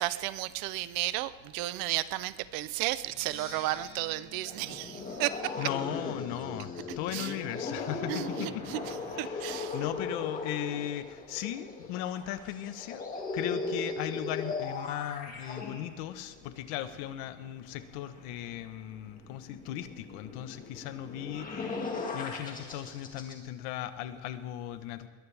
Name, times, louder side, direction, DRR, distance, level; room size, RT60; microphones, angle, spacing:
voice 1, 0.0-5.5 7.1-7.3 8.1-8.8 9.2-9.7, right 16 dB, 65° right, 16 dB, 0.7 m, -33 dB
Percussion, 3.0-6.8, right 3 dB, 35° right, 5.8 m, -51 dB
sound 1, 4.4-23.3, left 3 dB, 20° left, 2.3 m, -38 dB
voice 2, 5.6-21.9 22.1-25.1, left 12 dB, 80° left, 11 dB, 1.2 m, -37 dB
21.5 x 19.0 x 3.5 m, 1.4 s
cardioid pair, 160°, 38 cm